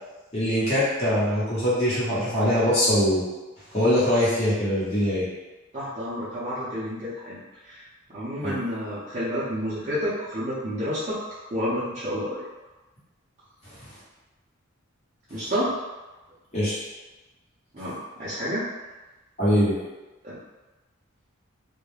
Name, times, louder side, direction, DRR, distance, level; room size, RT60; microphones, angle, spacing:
voice 1, 0.3-3.2 3.7-5.2 8.4-8.6 13.6-13.9 16.5-16.7 19.4-19.8, equal, 30° left, -10 dB, 1.0 m, -22 dB
voice 2, 5.7-7.4 7.7-7.9 8.1-11.2 11.5-12.4 15.3-15.7 17.7-18.7 20.2-20.4, equal, 35° right, -12 dB, 0.6 m, -29 dB
2.3 x 2.1 x 3.2 m, 1.1 s
head